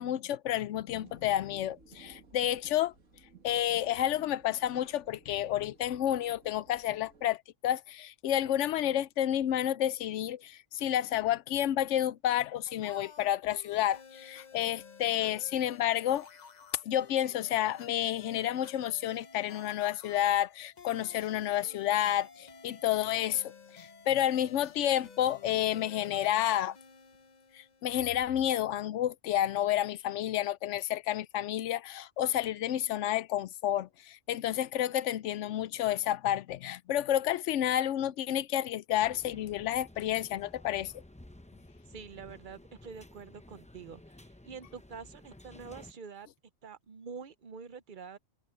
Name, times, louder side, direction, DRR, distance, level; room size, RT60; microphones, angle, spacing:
voice 1, 0.0-2.9 3.4-16.3 16.9-23.5 23.8-26.8 27.5-40.9, left 12 dB, 70° left, 0.9 m, -30 dB
sound 1, 0.9-7.4, right 5 dB, 75° right, 2.6 m, -57 dB
sound 2, 12.7-28.1, left 6 dB, 40° left, 0.8 m, -53 dB
sound 3, 38.9-45.9, left 1 dB, 10° left, 0.6 m, -53 dB
voice 2, 41.9-46.3 46.6-48.2, right 6 dB, 45° right, 0.8 m, -46 dB
omnidirectional pair, 1.3 m